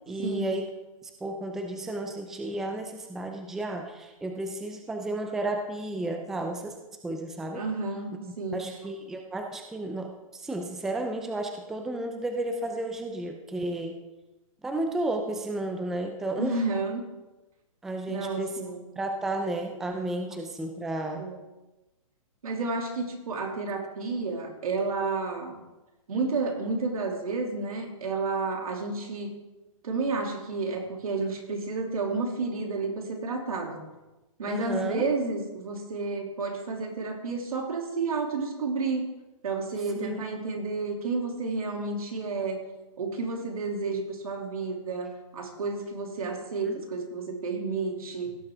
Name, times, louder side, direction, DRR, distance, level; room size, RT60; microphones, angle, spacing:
voice 1, 0.1-0.7 1.0-6.7 7.0-7.6 8.3-14.0 14.6-16.6 17.8-18.6 19.0-21.3 34.5-35.0 40.0-40.2 46.6-46.8, right 2 dB, ahead, 4 dB, 0.4 m, -32 dB
voice 2, 7.5-8.6 16.4-17.0 18.1-18.9 21.2-21.4 22.4-25.6 26.1-29.3 29.8-33.8 34.4-39.0 39.4-42.6 43.0-48.4, right 3 dB, 90° right, 2 dB, 2.7 m, -31 dB
17.0 x 7.5 x 3.6 m, 1.0 s
hypercardioid pair, 165°, 18 cm